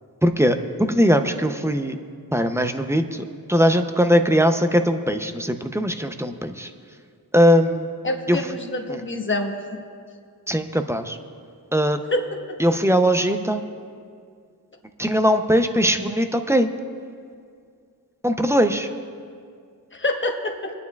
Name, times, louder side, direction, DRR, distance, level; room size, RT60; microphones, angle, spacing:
voice 1, 0.2-2.0 2.3-6.7 7.3-7.9 8.3-8.4 8.9-9.0 10.5-11.2 11.7-12.0 12.6-13.6 15.0-16.7 18.2-18.9, equal, 5° right, 7 dB, 0.5 m, -20 dB
voice 2, 8.0-9.8 12.1-12.3 19.9-20.7, left 2 dB, 30° left, 3 dB, 1.1 m, -26 dB
27.0 x 9.5 x 2.3 m, 2.2 s
wide cardioid pair, 100°, 37 cm